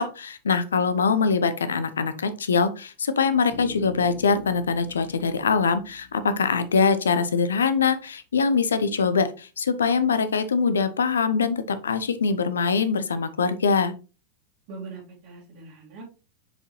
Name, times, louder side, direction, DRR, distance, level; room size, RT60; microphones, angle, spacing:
voice 1, 0.0-13.9, left 5 dB, 70° left, 12 dB, 0.7 m, -23 dB
Bass guitar, 3.5-7.2, left 5 dB, 45° left, 1.3 m, -45 dB
voice 2, 14.7-16.0, right 4 dB, 45° right, -4 dB, 2.3 m, -41 dB
6.3 x 5.0 x 3.1 m, 0.34 s
figure-of-eight pair, 90°, 0 cm